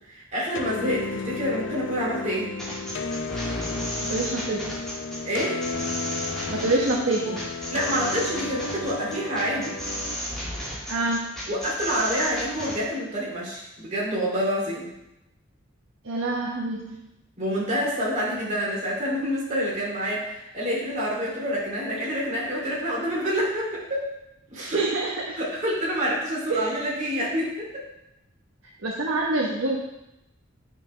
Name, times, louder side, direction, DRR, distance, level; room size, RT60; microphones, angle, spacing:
voice 1, 0.1-2.5 5.2-5.6 7.7-9.8 11.5-14.9 17.4-24.1 24.5-24.8 25.4-27.8, equal, 35° right, -5 dB, 2.8 m, -27 dB
sound 1, 0.5-10.1, left 3 dB, 65° left, 0.5 m, -33 dB
sound 2, 2.6-12.8, equal, ahead, 2.4 m, -33 dB
voice 2, 4.1-4.7 6.2-7.5 10.9-11.3 16.0-17.0 24.5-25.4 26.5-26.8 28.8-29.8, right 2 dB, 70° right, -3 dB, 1.1 m, -27 dB
9.1 x 6.5 x 3.3 m, 0.88 s
head